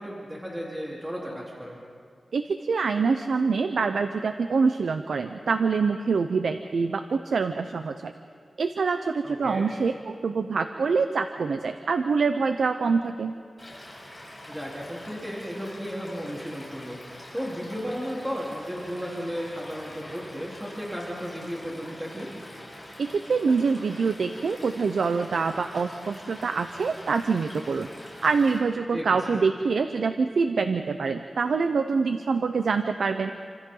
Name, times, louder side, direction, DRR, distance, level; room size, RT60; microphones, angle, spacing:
voice 1, 0.0-1.8 9.2-9.7 14.5-22.3 28.9-29.1, equal, 10° right, -5 dB, 3.7 m, -34 dB
voice 2, 2.3-8.1 8.6-13.3 23.0-27.9 28.2-33.3, right 4 dB, 90° right, 8 dB, 0.7 m, -25 dB
Stream / Liquid, 13.6-28.6, left 1 dB, 10° left, 7.8 m, -45 dB
29.0 x 26.5 x 3.9 m, 2.2 s
wide cardioid pair, 80°, 0 cm